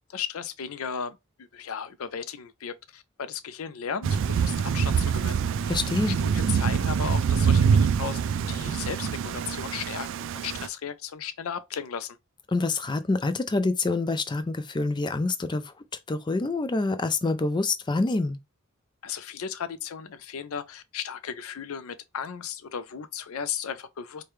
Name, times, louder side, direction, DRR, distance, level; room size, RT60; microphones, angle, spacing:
voice 1, 0.1-5.4 6.1-12.2 19.0-24.2, left 7 dB, 80° left, 0.5 m, -35 dB
Thunder / Rain, 4.0-10.7, right 6 dB, 60° right, 0.3 m, -25 dB
voice 2, 5.7-6.2 12.5-15.7 16.1-18.4, left 3 dB, 20° left, 0.4 m, -26 dB
4.7 x 2.3 x 3.1 m
head